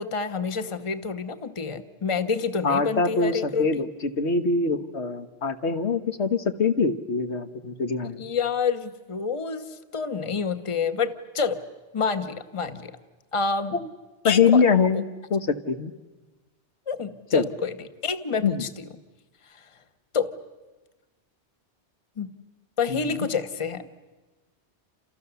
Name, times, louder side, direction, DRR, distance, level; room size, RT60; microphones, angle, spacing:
voice 1, 0.0-3.8 8.2-11.6 11.9-13.0 13.3-13.8 14.2-14.4 16.9-17.7 18.0-18.9 20.1-20.3 22.2-22.3 22.8-23.9, left 5 dB, 30° left, 9 dB, 1.1 m, -28 dB
voice 2, 2.6-3.9 4.2-8.2 13.7-13.8 14.2-15.0 15.3-15.9 17.3-17.5 18.4-18.7 22.9-23.3, left 5 dB, 75° left, 8 dB, 1.5 m, -23 dB
30.0 x 28.0 x 7.0 m, 1.2 s
omnidirectional pair, 1.2 m